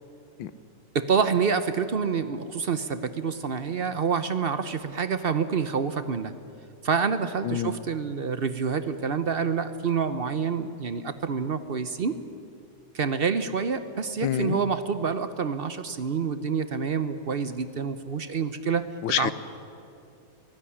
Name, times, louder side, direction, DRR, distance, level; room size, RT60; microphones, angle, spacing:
voice 1, 0.9-6.3 6.8-12.2 12.9-18.8 19.2-19.3, right 6 dB, 55° right, 12 dB, 0.6 m, -27 dB
voice 2, 14.2-14.6 19.0-19.3, left 11 dB, 80° left, 15 dB, 1.5 m, -27 dB
22.0 x 16.5 x 10.0 m, 2.5 s
omnidirectional pair, 2.0 m